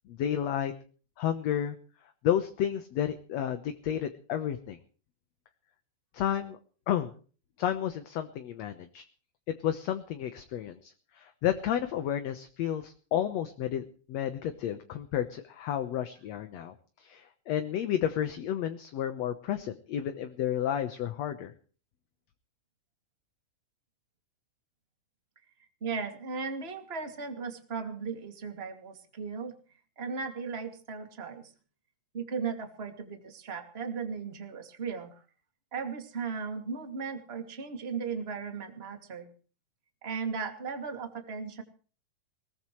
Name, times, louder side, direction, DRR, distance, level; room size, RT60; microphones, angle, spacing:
voice 1, 0.1-0.7 1.2-1.8 2.2-4.8 6.1-6.6 6.9-7.2 7.6-9.0 9.5-13.8 14.1-21.5, left 10 dB, 65° left, 8 dB, 2.0 m, -31 dB
voice 2, 25.8-29.6 30.0-31.5 32.1-35.1 35.7-39.3 40.0-41.6, right 5 dB, 20° right, 5 dB, 2.3 m, -36 dB
21.0 x 19.0 x 3.2 m, 0.40 s
omnidirectional pair, 3.7 m